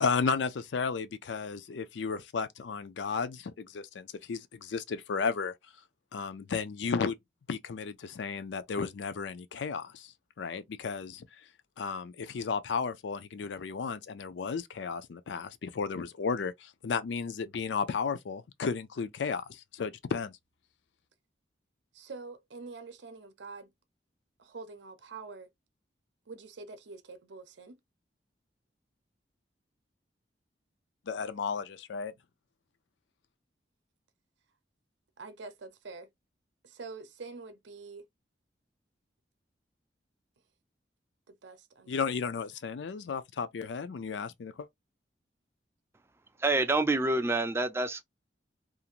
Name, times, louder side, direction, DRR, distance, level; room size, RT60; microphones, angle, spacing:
voice 1, 0.0-5.5 6.1-7.1 7.5-10.0 10.4-11.2 11.8-16.5 16.8-19.4 19.7-20.3 31.1-32.1 41.9-44.7, left 5 dB, 80° left, 0.4 m, -33 dB
voice 2, 21.9-23.7 24.4-25.5 26.3-27.7 35.2-36.1 36.6-38.0 41.3-42.5, right 4 dB, 80° right, 0.6 m, -46 dB
voice 3, 46.4-48.0, right 2 dB, 15° right, 0.3 m, -27 dB
2.5 x 2.5 x 2.8 m
head